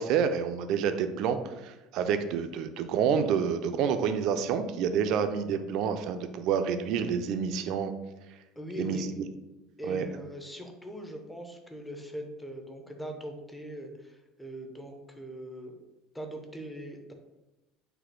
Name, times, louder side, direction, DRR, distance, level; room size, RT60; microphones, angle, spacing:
voice 1, 0.0-7.9 8.8-9.3 9.8-10.1, right 7 dB, 55° right, 8 dB, 0.4 m, -28 dB
voice 2, 8.6-9.2 9.8-15.8 16.1-17.1, right 1 dB, 5° left, 3 dB, 0.5 m, -40 dB
4.1 x 2.7 x 4.5 m, 1.0 s
cardioid pair, 160°, 0 cm